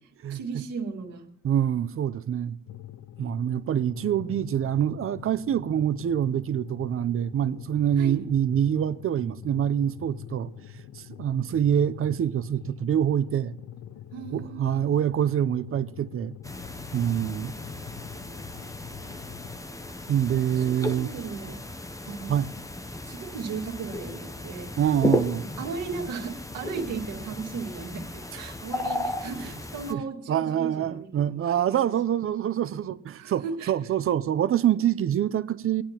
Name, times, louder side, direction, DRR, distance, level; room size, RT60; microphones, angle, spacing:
voice 1, 0.3-1.3 8.0-8.2 14.1-14.9 20.6-21.6 22.0-22.4 23.1-24.7 25.6-31.8 33.2-33.7, right 5 dB, 85° right, 2.0 m, -36 dB
voice 2, 1.4-2.6 3.2-10.5 10.9-13.6 14.3-16.3 16.9-17.5 20.1-21.1 22.3-22.5 24.8-25.5 28.3-28.4 29.9-30.0 30.3-35.8, right 10 dB, 45° right, 0.6 m, -25 dB
sound 1, 2.7-19.6, left 10 dB, 55° left, 0.5 m, -44 dB
sound 2, 16.4-29.9, left 1 dB, 10° left, 0.6 m, -35 dB
25.5 x 8.7 x 2.9 m
cardioid pair, 90°, 30 cm